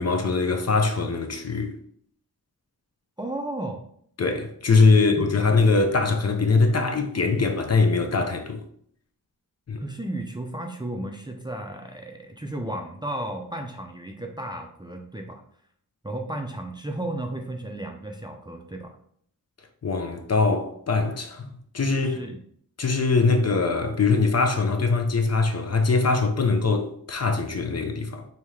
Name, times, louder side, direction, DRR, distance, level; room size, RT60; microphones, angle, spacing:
voice 1, 0.0-1.7 4.2-8.6 9.7-9.8 19.8-22.2 22.8-28.2, left 4 dB, 45° left, 0.5 m, -22 dB
voice 2, 3.2-3.9 5.1-5.4 9.8-15.4 16.0-19.0 22.0-22.4, right 1 dB, 15° right, 0.4 m, -34 dB
3.5 x 2.8 x 3.1 m
wide cardioid pair, 75°, 35 cm